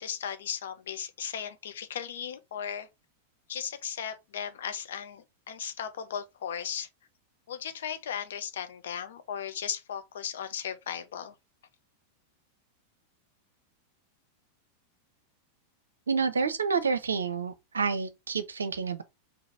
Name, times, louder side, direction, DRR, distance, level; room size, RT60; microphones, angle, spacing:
voice 1, 0.0-2.9 3.5-6.9 7.5-11.3, left 8 dB, 60° left, 0.6 m, -36 dB
voice 2, 16.1-19.0, right 5 dB, 75° right, 0.6 m, -29 dB
4.0 x 2.8 x 4.3 m
figure-of-eight pair, 90°, 0 cm